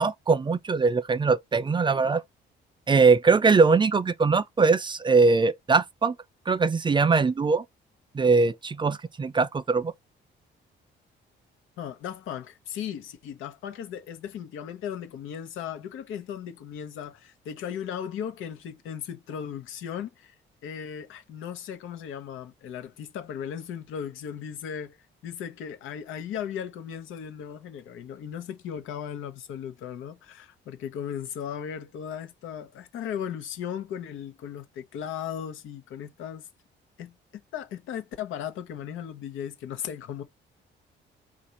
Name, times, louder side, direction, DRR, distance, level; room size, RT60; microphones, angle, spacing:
voice 1, 0.0-2.2 2.9-6.1 6.5-7.6 8.1-9.9, right 4 dB, 25° right, 0.4 m, -21 dB
voice 2, 11.8-20.3 20.6-25.0 25.2-36.5 37.0-37.1 37.5-40.2, left 8 dB, 90° left, 0.8 m, -36 dB
4.0 x 2.5 x 4.3 m
cardioid pair, 90°, 20 cm